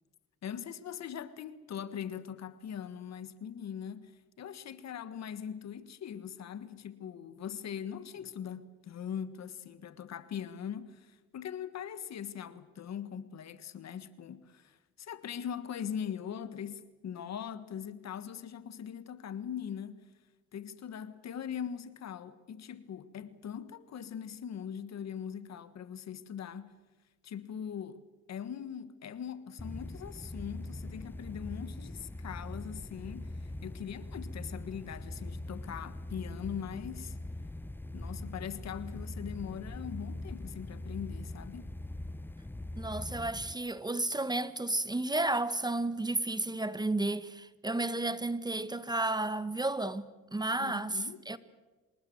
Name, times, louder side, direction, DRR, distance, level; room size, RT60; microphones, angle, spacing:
voice 1, 0.4-20.1 20.5-26.8 27.2-28.0 28.3-37.2 37.9-41.7 50.6-51.2, left 8 dB, 60° left, 1.6 m, -41 dB
sound 1, 29.6-43.5, left 1 dB, 5° left, 0.8 m, -42 dB
voice 2, 42.8-51.4, right 2 dB, 15° right, 1.1 m, -32 dB
25.5 x 20.0 x 7.9 m
cardioid pair, 90°, 30 cm